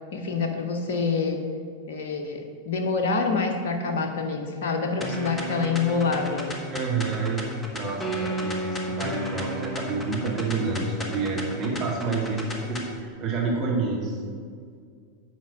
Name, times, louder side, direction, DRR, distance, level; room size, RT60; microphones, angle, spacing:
voice 1, 0.1-1.4 1.9-6.6, left 4 dB, 55° left, 4 dB, 0.9 m, -26 dB
sound 1, 5.0-13.0, equal, 15° left, 1.0 m, -33 dB
voice 2, 6.7-7.4 7.7-14.2, right 4 dB, 25° right, -3 dB, 2.1 m, -28 dB
9.5 x 4.5 x 5.0 m, 2.1 s
figure-of-eight pair, 90°, 0 cm